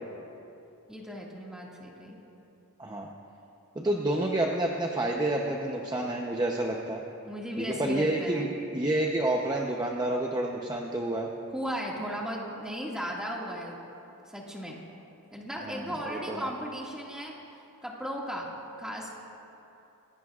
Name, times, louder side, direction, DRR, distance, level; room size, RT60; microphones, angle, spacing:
voice 1, 0.9-2.2 7.2-8.5 11.5-13.8 14.2-14.8 15.3-17.4 17.8-19.1, equal, 5° right, -3 dB, 2.0 m, -36 dB
voice 2, 3.8-7.0 7.6-8.5 8.7-11.3 15.6-16.5, right 1 dB, 20° right, 0 dB, 0.8 m, -29 dB
25.5 x 17.0 x 2.5 m, 2.8 s
head